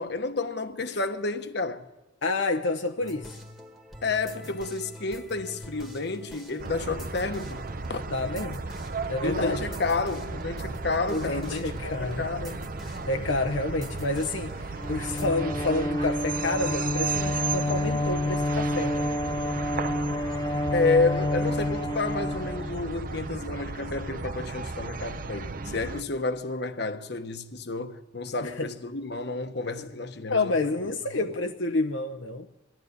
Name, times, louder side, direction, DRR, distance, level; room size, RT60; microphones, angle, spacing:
voice 1, 0.0-1.9 4.0-7.6 7.9-8.0 9.2-12.7 20.7-31.3, left 3 dB, 55° left, 1.2 m, -30 dB
voice 2, 2.2-3.3 8.1-8.6 9.1-9.6 11.1-12.2 12.9-19.1 28.4-28.7 29.8-29.9 30.3-32.5, left 2 dB, 75° left, 0.9 m, -29 dB
sound 1, 3.0-15.3, equal, ahead, 1.5 m, -45 dB
sound 2, 6.6-26.0, right 4 dB, 45° right, 0.7 m, -35 dB
Bowed string instrument, 14.7-23.1, left 1 dB, 25° left, 1.4 m, -29 dB
22.5 x 14.0 x 9.7 m
head